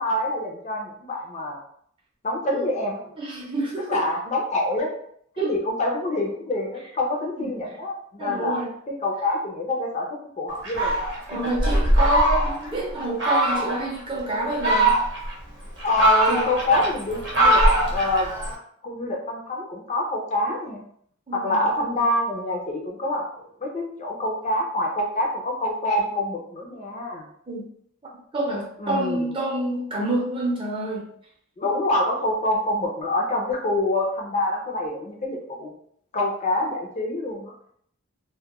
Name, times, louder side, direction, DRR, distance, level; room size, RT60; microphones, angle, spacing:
voice 1, 0.0-1.6 2.2-3.0 3.9-4.9 5.4-8.6 9.0-11.1 15.8-17.6 17.9-18.3 18.8-20.8 21.3-27.3 28.8-29.3 31.6-35.7 36.1-37.5, left 1 dB, 35° left, 0 dB, 0.4 m, -26 dB
voice 2, 3.2-4.0 5.4-5.5 7.3-7.5 8.2-8.7 11.3-15.0 16.3-16.4 21.3-21.7 27.5-27.7 28.3-31.1, right 2 dB, 25° right, -2 dB, 0.5 m, -27 dB
Fowl, 10.6-12.7 13.2-13.8 14.4-15.3 15.8-18.6, right 1 dB, 55° right, 0.8 m, -21 dB
2.2 x 2.1 x 2.8 m, 0.66 s
head